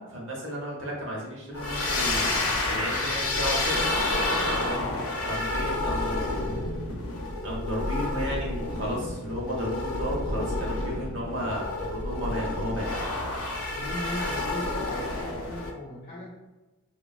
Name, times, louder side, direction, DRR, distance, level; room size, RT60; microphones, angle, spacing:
voice 1, 0.0-4.0 5.2-6.8 7.4-12.9, equal, 65° right, -3 dB, 0.8 m, -33 dB
sound 1, 1.5-15.7, left 2 dB, 90° left, 0.5 m, -29 dB
voice 2, 4.7-5.1 13.7-16.3, left 1 dB, 40° left, -9 dB, 0.6 m, -38 dB
3.0 x 2.3 x 2.3 m, 1.1 s
head